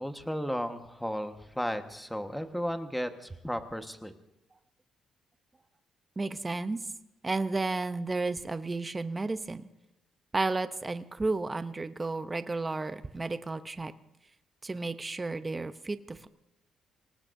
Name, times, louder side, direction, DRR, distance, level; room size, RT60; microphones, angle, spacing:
voice 1, 0.0-4.1, equal, 5° left, 7 dB, 1.4 m, -34 dB
voice 2, 6.2-6.8 7.2-9.6 10.3-13.9 14.6-16.3, right 3 dB, 25° right, 11 dB, 0.8 m, -32 dB
26.5 x 18.5 x 2.7 m, 0.92 s
cardioid pair, 90°, 0 cm